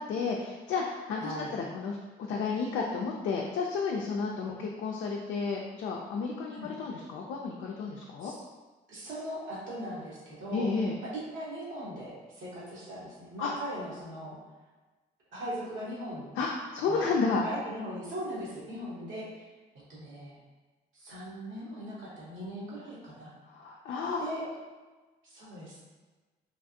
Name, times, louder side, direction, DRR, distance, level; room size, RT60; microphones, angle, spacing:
voice 1, 0.0-2.0 2.3-8.3 10.5-11.0 13.4-13.5 16.4-17.4 23.5-24.2, left 4 dB, 70° left, -1 dB, 0.4 m, -32 dB
voice 2, 1.2-1.5 4.5-4.6 6.5-6.7 8.2-8.3 8.9-10.7 11.0-14.4 15.3-16.3 16.8-17.1 17.4-19.4 19.9-20.4 20.9-23.3 24.2-24.4 25.2-25.8, equal, 75° right, -7 dB, 1.2 m, -39 dB
3.2 x 2.3 x 2.7 m, 1.3 s
supercardioid pair, 50°, 20 cm